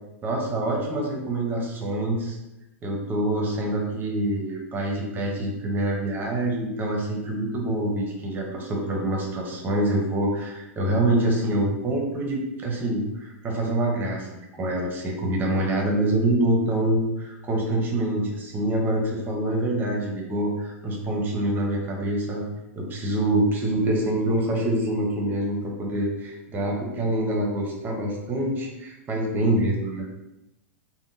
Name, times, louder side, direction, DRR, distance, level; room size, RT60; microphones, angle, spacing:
voice 1, 0.2-2.4 2.8-22.4 22.7-30.0, right 1 dB, 25° right, 0 dB, 0.8 m, -26 dB
3.5 x 2.2 x 2.6 m, 0.93 s
hypercardioid pair, 110°, 8 cm